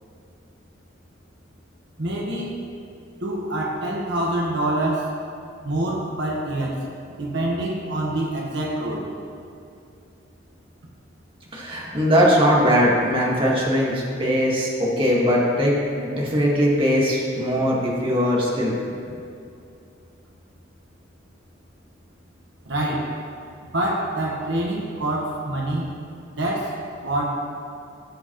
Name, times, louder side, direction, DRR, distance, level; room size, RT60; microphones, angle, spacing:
voice 1, 2.0-2.6 3.2-5.1 5.6-6.8 7.1-9.1 22.6-23.1 23.6-25.9 26.3-27.2, right 1 dB, 65° right, -2 dB, 1.3 m, -26 dB
voice 2, 11.5-15.8 16.0-18.7, equal, 30° right, -5 dB, 1.7 m, -20 dB
15.5 x 7.2 x 3.1 m, 2.6 s
head